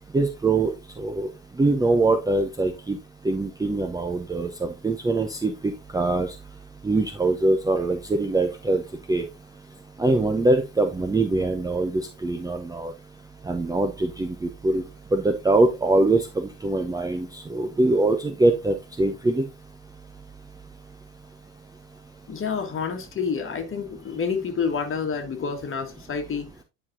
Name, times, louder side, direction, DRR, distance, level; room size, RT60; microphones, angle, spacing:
voice 1, 0.1-0.7 1.0-1.3 1.6-3.0 3.2-4.5 4.8-5.5 5.9-6.3 6.8-8.8 9.1-9.2 10.0-12.9 13.5-14.8 15.1-16.2 16.6-19.4, right 2 dB, 10° right, 0.7 m, -23 dB
voice 2, 22.3-26.5, left 6 dB, 30° left, 1.8 m, -28 dB
9.5 x 5.0 x 2.6 m
figure-of-eight pair, 70°, 45 cm